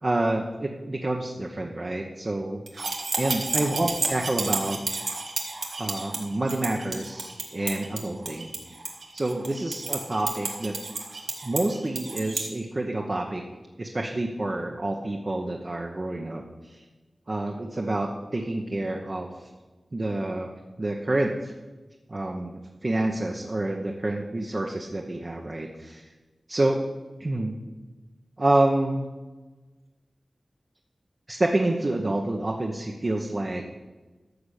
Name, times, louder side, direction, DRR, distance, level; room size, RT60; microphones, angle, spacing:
voice 1, 0.0-2.6 3.2-4.8 5.8-8.8 9.1-10.8 11.4-13.4 13.8-16.8 17.3-19.3 19.9-20.5 20.8-21.5 22.1-26.0 26.5-26.8 27.2-27.6 28.4-29.1 31.3-33.6, right 2 dB, 40° right, 1 dB, 1.0 m, -28 dB
sound 1, 2.7-12.5, right 3 dB, 90° right, 1.7 m, -31 dB
13.0 x 7.1 x 6.5 m, 1.2 s
wide cardioid pair, 90°, 0 cm